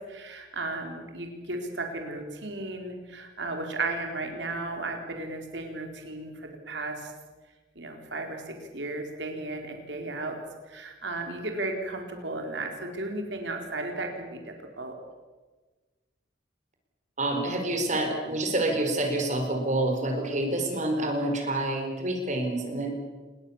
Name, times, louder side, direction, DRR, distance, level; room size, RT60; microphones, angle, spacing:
voice 1, 0.1-7.1 7.8-10.3 10.7-14.9, right 2 dB, 75° right, 3 dB, 4.2 m, -35 dB
voice 2, 17.2-22.9, right 1 dB, 45° right, 4 dB, 4.8 m, -27 dB
28.0 x 21.5 x 7.2 m, 1.3 s
head